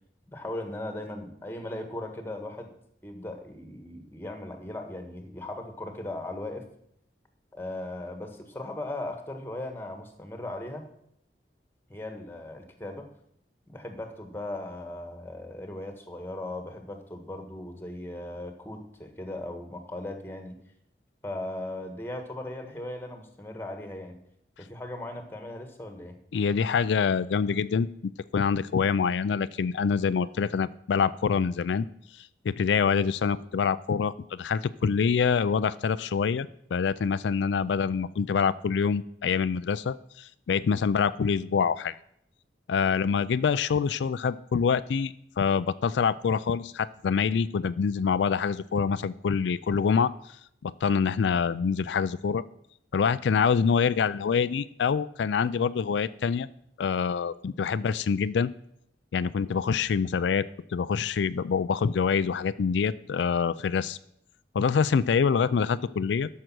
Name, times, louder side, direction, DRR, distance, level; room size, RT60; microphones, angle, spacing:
voice 1, 0.3-2.7 3.0-6.7 7.6-10.9 11.9-13.1 13.7-20.6 21.2-24.2 24.6-26.2, left 1 dB, 15° left, 6 dB, 1.4 m, -38 dB
voice 2, 26.3-31.9 32.2-42.0 42.7-50.4 50.6-52.4 52.9-56.5 56.8-58.5 59.1-64.0 64.5-66.3, left 6 dB, 85° left, 15 dB, 0.4 m, -26 dB
12.5 x 6.6 x 6.1 m, 0.71 s
head